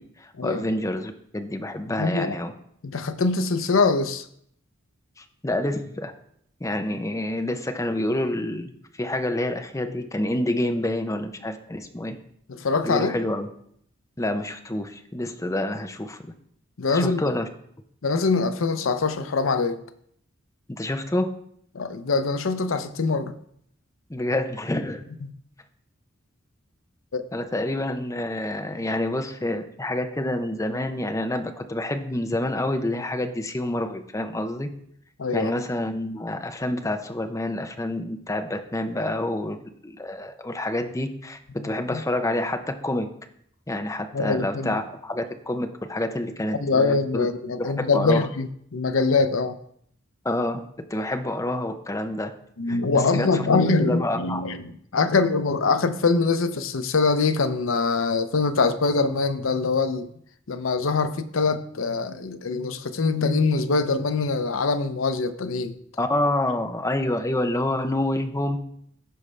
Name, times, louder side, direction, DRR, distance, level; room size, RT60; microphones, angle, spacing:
voice 1, 0.2-2.5 5.2-6.1 6.6-8.7 9.0-12.2 12.8-13.5 14.2-16.3 16.9-17.5 20.7-21.3 24.1-25.0 27.3-34.7 35.3-39.6 39.8-43.1 43.7-47.3 47.6-48.3 50.2-52.3 52.7-53.5 53.8-54.4 66.0-68.6, left 1 dB, 15° left, 0.7 m, -28 dB
voice 2, 2.0-2.4 2.8-4.2 12.5-13.1 16.8-17.2 18.0-19.8 21.7-23.4 27.1-27.2 35.2-35.5 41.6-42.0 44.1-44.8 46.5-49.6 52.6-60.1 60.5-65.8, left 4 dB, 80° left, 0.7 m, -23 dB
15.0 x 5.3 x 3.3 m
head